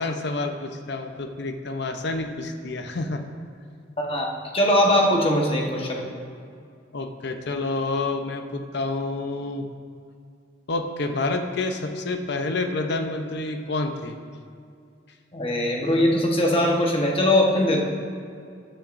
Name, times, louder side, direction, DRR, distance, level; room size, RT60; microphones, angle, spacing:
voice 1, 0.0-3.2 6.9-9.7 10.7-14.2, left 2 dB, 60° left, 6 dB, 0.7 m, -28 dB
voice 2, 4.0-6.1 15.3-17.8, left 1 dB, 30° left, -1 dB, 1.2 m, -21 dB
14.0 x 8.9 x 2.6 m, 2.3 s
head